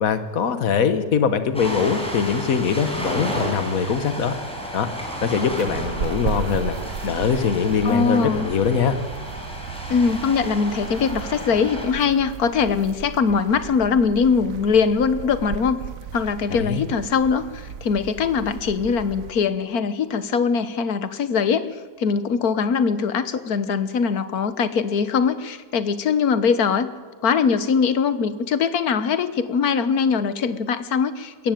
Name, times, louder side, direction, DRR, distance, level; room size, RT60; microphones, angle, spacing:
voice 1, 0.0-4.3 4.7-4.9 5.2-6.7 7.0-9.0 16.5-16.9, left 6 dB, 70° left, 11 dB, 1.7 m, -22 dB
Ocean, 1.5-11.9, equal, 5° left, 5.0 m, -32 dB
sound 1, 5.5-19.3, right 7 dB, 70° right, 1.2 m, -35 dB
voice 2, 7.8-8.5 9.9-15.8 16.1-21.7 22.0-26.9 27.2-31.5, left 6 dB, 85° left, 13 dB, 1.6 m, -22 dB
21.5 x 15.5 x 9.1 m, 1.5 s
omnidirectional pair, 1.5 m